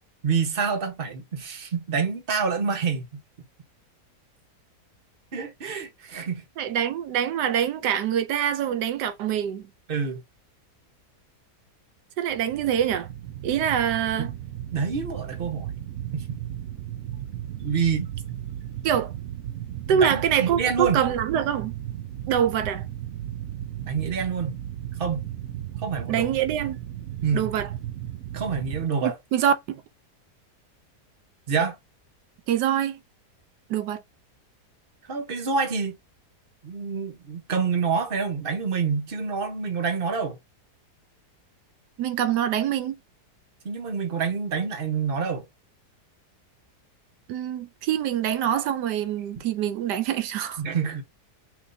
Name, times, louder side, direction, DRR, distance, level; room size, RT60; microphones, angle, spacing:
voice 1, 0.2-3.2 5.3-6.4 9.9-10.2 14.2-14.3 14.7-15.7 16.1-16.4 17.6-18.1 19.9-21.0 23.8-24.6 25.0-25.3 25.8-26.3 27.2-27.5 28.3-29.1 31.5-31.8 35.1-35.9 36.6-40.4 43.6-45.4 50.6-51.0, right 5 dB, 35° right, 1.3 m, -27 dB
voice 2, 6.6-9.6 12.2-13.1 13.4-14.3 18.8-19.1 19.9-21.7 22.3-22.8 26.1-26.8 27.3-27.7 29.0-29.8 32.5-33.0 33.7-34.0 42.0-43.0 47.3-50.6, right 9 dB, 90° right, 1.3 m, -25 dB
sound 1, 12.3-28.9, right 11 dB, 65° right, 1.0 m, -35 dB
5.9 x 2.7 x 2.7 m
omnidirectional pair, 1.7 m